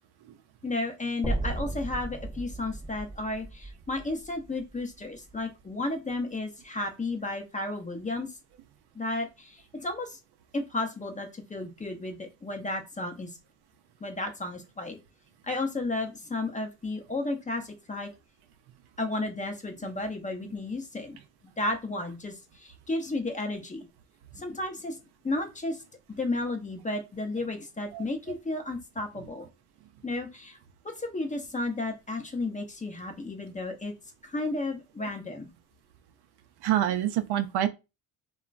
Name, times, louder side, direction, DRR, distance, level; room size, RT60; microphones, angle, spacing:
voice 1, 0.6-8.3 8.9-10.2 10.5-13.3 14.0-15.0 15.4-18.1 19.0-21.2 21.6-23.9 24.3-25.0 25.2-25.8 26.1-29.5 30.0-30.6 31.0-33.9 34.2-35.5, left 2 dB, 15° left, 0.6 m, -33 dB
sound 1, 1.2-5.4, right 2 dB, 5° right, 0.9 m, -35 dB
voice 2, 36.6-37.7, right 12 dB, 60° right, 0.5 m, -26 dB
2.9 x 2.2 x 2.5 m
supercardioid pair, 70°, 46 cm